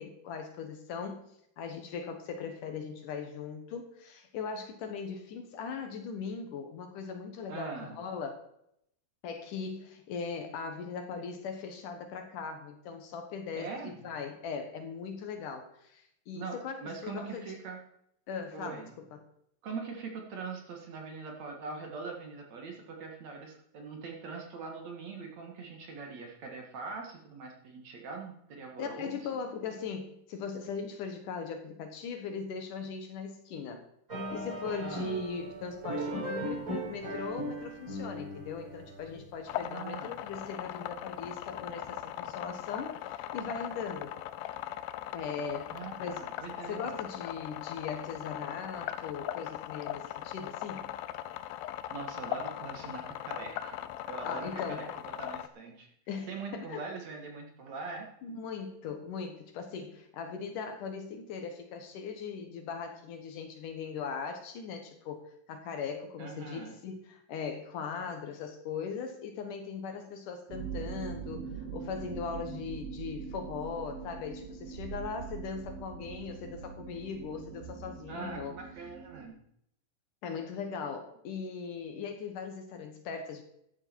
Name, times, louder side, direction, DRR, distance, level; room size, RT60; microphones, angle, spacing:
voice 1, 0.0-8.4 9.2-17.5 18.3-19.2 28.8-33.8 34.3-44.2 45.1-46.2 46.7-50.9 54.2-54.9 56.1-56.8 58.2-78.5 80.2-83.4, left 6 dB, 65° left, 5 dB, 2.6 m, -39 dB
voice 2, 7.5-8.0 13.6-14.1 16.3-17.8 18.5-19.0 19.6-29.3 34.8-35.2 39.6-40.2 45.7-47.0 51.6-55.9 56.3-58.1 66.2-66.8 78.1-79.4, right 4 dB, 55° right, 1 dB, 2.7 m, -42 dB
sound 1, 34.1-39.4, right 1 dB, 20° right, 5.5 m, -38 dB
sound 2, 39.5-55.5, left 13 dB, 85° left, 2.4 m, -39 dB
sound 3, 70.5-79.3, right 7 dB, 80° right, 3.4 m, -42 dB
14.5 x 11.0 x 4.6 m, 0.74 s
omnidirectional pair, 4.3 m